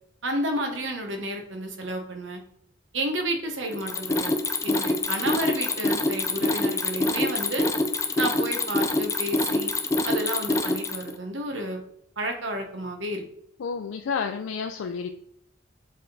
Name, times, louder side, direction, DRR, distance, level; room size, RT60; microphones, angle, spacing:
voice 1, 0.2-2.4 2.9-4.3 4.6-7.7 8.2-9.7 10.0-11.8 12.2-13.2, right 1 dB, 75° right, 4 dB, 1.1 m, -31 dB
Mechanisms, 3.7-11.2, left 2 dB, 15° left, 0.4 m, -25 dB
voice 2, 13.6-15.1, left 5 dB, 85° left, 5 dB, 0.4 m, -30 dB
6.6 x 3.6 x 3.9 m, 0.70 s
head